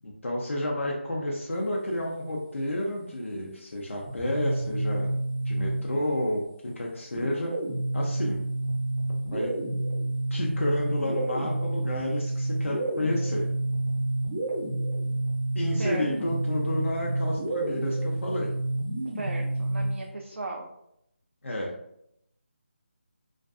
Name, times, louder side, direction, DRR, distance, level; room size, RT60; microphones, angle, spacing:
voice 1, 0.0-5.1 5.5-6.4 6.8-7.5 7.9-8.4 9.3-9.5 10.3-13.5 15.5-18.5 21.4-21.7, left 1 dB, 85° left, -2 dB, 0.6 m, -30 dB
sound 1, 4.1-6.2 7.2-20.1, right 2 dB, 30° right, 0.6 m, -29 dB
voice 2, 19.1-20.7, right 2 dB, 75° right, 0 dB, 0.4 m, -36 dB
2.5 x 2.4 x 2.3 m, 0.76 s
figure-of-eight pair, 165°, 7 cm